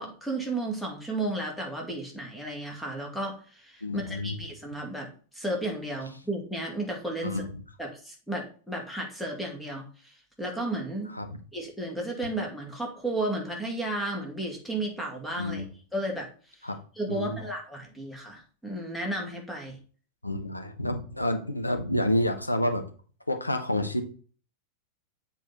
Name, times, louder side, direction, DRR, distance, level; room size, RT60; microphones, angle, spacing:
voice 1, 0.0-7.4 7.8-11.1 11.5-15.6 15.9-16.3 17.0-19.8, right 1 dB, 5° left, 0 dB, 2.4 m, -33 dB
voice 2, 3.8-4.4 7.2-7.6 11.1-11.3 15.4-15.7 16.6-16.8 17.1-17.4 20.2-22.8 23.3-24.0, left 1 dB, 85° left, 6 dB, 1.1 m, -29 dB
7.6 x 4.4 x 4.0 m, 0.40 s
figure-of-eight pair, 90°, 0 cm